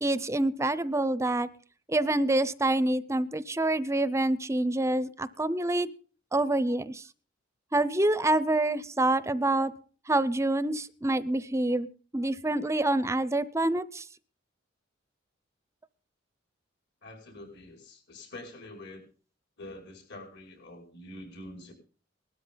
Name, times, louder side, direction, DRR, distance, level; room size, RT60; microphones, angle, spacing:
voice 1, 0.0-1.5 1.9-5.9 6.3-7.0 7.7-9.7 10.1-11.9 12.1-14.0, right 2 dB, 15° right, 17 dB, 0.6 m, -26 dB
voice 2, 17.0-19.0 19.6-21.7, left 1 dB, 60° left, 2 dB, 5.8 m, -46 dB
19.5 x 13.0 x 3.9 m, 0.40 s
head